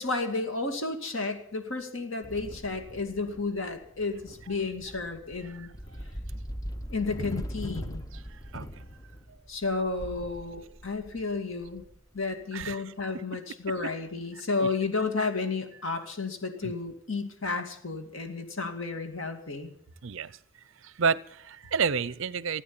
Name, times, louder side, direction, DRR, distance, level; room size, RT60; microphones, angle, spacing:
voice 1, 0.0-5.7 6.9-8.1 9.5-11.8 12.1-19.7, left 3 dB, 65° left, 6 dB, 2.3 m, -32 dB
sound 1, 2.2-12.4, equal, 15° left, 0.7 m, -41 dB
voice 2, 8.3-8.7 12.5-12.8 16.6-16.7 20.0-20.4 20.8-22.6, right 5 dB, 60° right, 20 dB, 0.5 m, -30 dB
16.5 x 9.2 x 8.6 m, 0.70 s
head